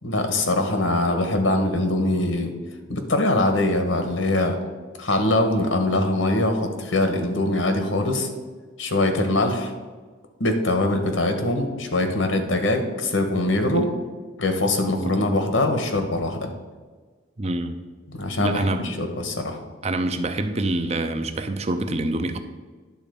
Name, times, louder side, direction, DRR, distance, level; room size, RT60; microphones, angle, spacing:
voice 1, 0.0-2.5 2.9-4.5 5.0-8.3 8.8-9.7 10.4-13.9 14.4-16.5 18.1-19.6, left 2 dB, 85° left, 5 dB, 1.5 m, -22 dB
voice 2, 17.4-17.8 18.4-18.9 19.8-22.4, right 2 dB, 35° right, 8 dB, 0.7 m, -26 dB
10.5 x 4.2 x 6.9 m, 1.4 s
head